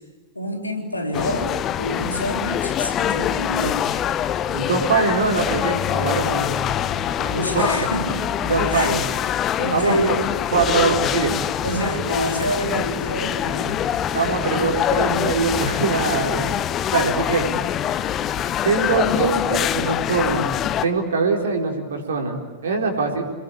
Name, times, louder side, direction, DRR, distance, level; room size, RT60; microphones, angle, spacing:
voice 1, 0.4-3.9 7.4-8.2 8.7-8.9 9.6-10.2 11.6-13.8, equal, 85° left, 2 dB, 3.5 m, -27 dB
sound 1, 1.1-20.9, left 10 dB, 30° left, 0.9 m, -24 dB
voice 2, 4.5-7.9 8.4-9.0 9.7-10.2 10.5-11.4 14.1-16.5 16.9-17.6 18.6-20.5 20.8-23.2, right 4 dB, 65° right, 2 dB, 4.3 m, -23 dB
28.0 x 20.5 x 8.7 m, 1.3 s
figure-of-eight pair, 90°, 0 cm